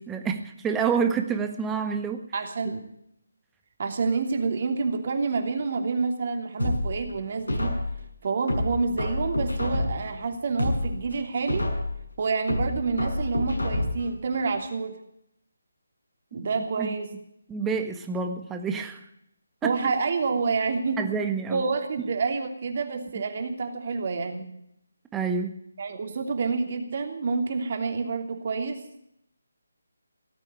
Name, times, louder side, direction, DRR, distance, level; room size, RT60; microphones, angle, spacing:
voice 1, 0.1-2.2 16.4-16.5 16.8-16.9 17.5-19.0 19.6-19.7 21.0-21.6 25.1-25.5, right 6 dB, 10° right, 5 dB, 1.5 m, -28 dB
voice 2, 2.3-2.9 3.8-7.7 8.2-11.7 12.2-15.0 16.3-17.1 19.6-21.0 21.5-24.5 25.8-28.8, right 4 dB, 45° right, 5 dB, 2.9 m, -28 dB
sound 1, 6.6-8.0 8.5-10.1 10.5-12.0 12.5-14.1 14.5-14.6, left 1 dB, 80° left, 7.1 m, -28 dB
18.0 x 8.2 x 9.6 m, 0.74 s
figure-of-eight pair, 155°, 0 cm